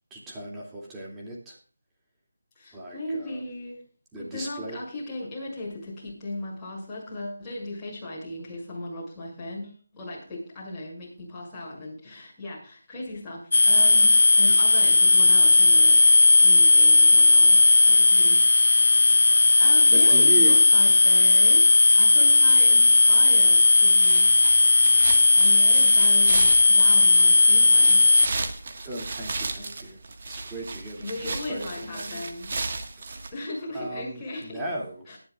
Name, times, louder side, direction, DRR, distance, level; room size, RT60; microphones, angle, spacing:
voice 1, 0.1-1.6 2.7-3.4 4.1-4.8 19.9-20.6 28.8-30.0 30.2-32.3 33.1-33.2 33.7-35.0, right 2 dB, 10° right, -4 dB, 2.7 m, -36 dB
voice 2, 2.5-3.8 4.2-16.0 16.4-18.4 19.1-21.7 22.0-24.4 25.3-28.1 31.0-32.5 33.3-34.6 35.1-35.2, left 1 dB, 10° left, -8 dB, 6.5 m, -37 dB
sound 1, 13.5-28.3, left 3 dB, 70° left, 0.7 m, -16 dB
sound 2, 23.9-33.3, right 3 dB, 45° right, 1.7 m, -35 dB
19.5 x 11.0 x 2.5 m, 0.38 s
figure-of-eight pair, 165°, 0 cm